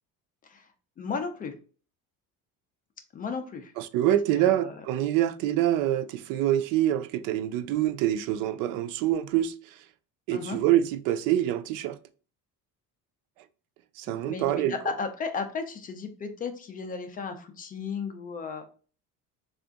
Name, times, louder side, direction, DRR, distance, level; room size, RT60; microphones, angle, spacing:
voice 1, 1.0-1.6 3.1-3.7 4.3-4.7 10.3-10.6 14.3-18.7, left 5 dB, 25° left, 0.5 m, -34 dB
voice 2, 3.8-9.8 10.3-12.0 14.0-14.7, right 12 dB, 80° right, 0.5 m, -26 dB
3.4 x 2.5 x 3.8 m
cardioid pair, 155°, 33 cm